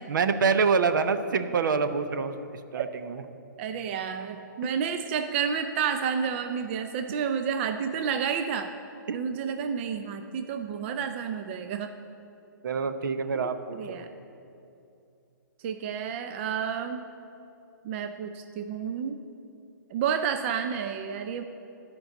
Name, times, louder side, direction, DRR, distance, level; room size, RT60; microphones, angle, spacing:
voice 1, 0.0-3.2 9.1-9.2 12.6-14.0, right 5 dB, 70° right, 10 dB, 0.7 m, -26 dB
voice 2, 3.6-8.7 9.1-11.9 13.7-14.1 15.6-17.1 17.8-19.2 19.9-21.4, right 7 dB, 35° right, 7 dB, 0.5 m, -30 dB
10.5 x 5.2 x 8.1 m, 2.7 s
hypercardioid pair, 150°, 11 cm